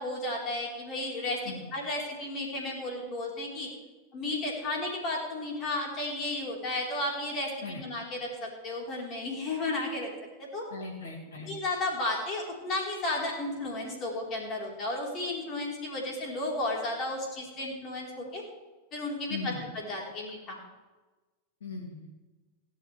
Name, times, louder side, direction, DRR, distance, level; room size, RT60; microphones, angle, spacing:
voice 1, 0.0-1.4 1.7-3.7 4.1-10.1 10.4-10.7 11.4-18.4 18.9-20.6, left 2 dB, 30° left, -1 dB, 4.2 m, -33 dB
voice 2, 10.7-11.5 19.3-19.7 21.6-22.1, left 3 dB, 65° left, 0 dB, 2.7 m, -39 dB
16.5 x 12.0 x 3.4 m, 1.2 s
figure-of-eight pair, 90°, 0 cm